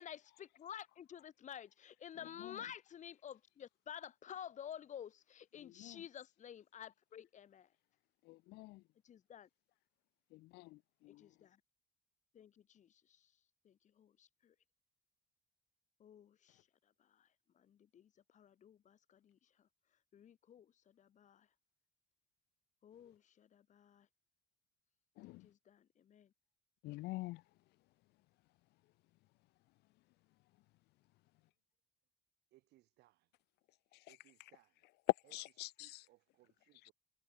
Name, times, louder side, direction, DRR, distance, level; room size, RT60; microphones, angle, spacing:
voice 1, 0.0-7.7 9.0-9.5 11.2-11.6 12.3-13.2 13.6-14.5 16.0-16.6 17.0-17.3 17.6-19.4 20.1-21.5 22.8-24.1 25.4-26.3, left 9 dB, 45° left, 1.3 m, -52 dB
voice 2, 8.3-8.8 10.3-10.8 11.0-11.2 25.2-25.5 26.8-27.4 35.3-35.7, left 20 dB, 80° left, 0.4 m, -47 dB
voice 3, 32.5-33.3 33.9-34.9 35.2-36.9, right 17 dB, 80° right, 7.5 m, -69 dB
cardioid pair, 110°, 17 cm